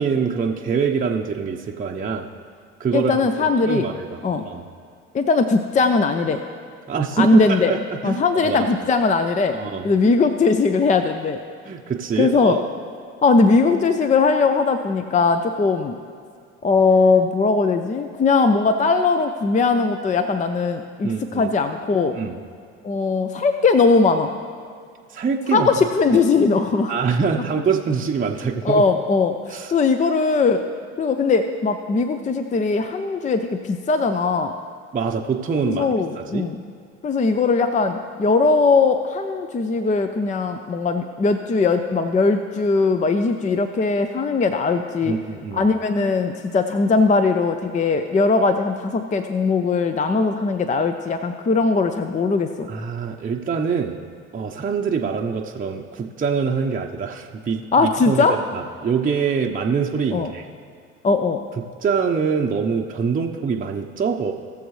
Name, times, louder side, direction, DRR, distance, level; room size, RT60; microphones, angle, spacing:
voice 1, 0.0-2.3 2.8-4.2 4.4-4.7 6.9-8.7 9.5-9.9 11.6-12.7 21.0-21.5 22.2-22.4 25.1-25.7 26.9-28.8 29.5-29.7 34.9-35.9 36.2-36.4 45.1-45.6 52.7-54.0 54.3-58.3 58.5-60.5 61.8-64.3, right 6 dB, 25° right, 1 dB, 0.8 m, -24 dB
voice 2, 2.9-3.9 4.2-4.5 5.1-6.4 7.2-7.7 8.0-9.6 9.8-11.4 12.2-12.6 13.2-16.0 16.6-22.2 22.8-24.3 25.5-26.9 28.6-29.4 29.7-30.6 31.0-34.5 35.6-36.6 37.0-45.2 45.5-52.7 57.7-58.4 60.1-60.3 61.0-61.4, left 4 dB, 20° left, 8 dB, 0.6 m, -19 dB
20.0 x 6.9 x 3.2 m, 2.3 s
hypercardioid pair, 65°, 35 cm